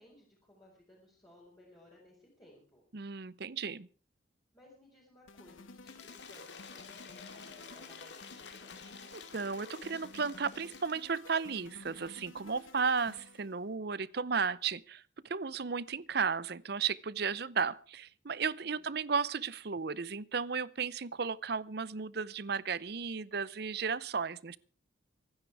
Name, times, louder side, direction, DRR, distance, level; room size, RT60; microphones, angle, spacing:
voice 1, 0.0-2.8 4.5-8.8 18.7-18.8, left 1 dB, 20° left, -4 dB, 4.9 m, -60 dB
voice 2, 2.9-3.9 9.1-24.6, right 5 dB, 55° right, 19 dB, 0.7 m, -34 dB
sound 1, 5.3-13.6, left 3 dB, 85° left, 1.2 m, -53 dB
Cheering / Applause / Crowd, 5.8-11.1, left 5 dB, 60° left, 2.2 m, -50 dB
25.0 x 9.8 x 4.8 m, 0.39 s
head